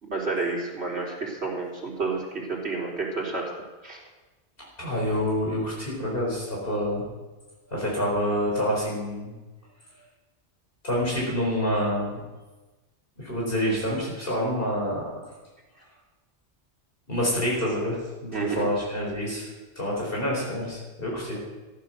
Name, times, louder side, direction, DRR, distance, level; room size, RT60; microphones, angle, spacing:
voice 1, 0.0-3.5 3.8-4.0 18.3-18.7, right 3 dB, 65° right, -3 dB, 3.8 m, -30 dB
voice 2, 4.8-7.0 7.7-9.3 10.8-12.2 13.2-15.1 17.1-19.5 19.8-21.4, equal, 55° left, -4 dB, 4.5 m, -27 dB
15.0 x 11.0 x 6.4 m, 1.2 s
omnidirectional pair, 1.2 m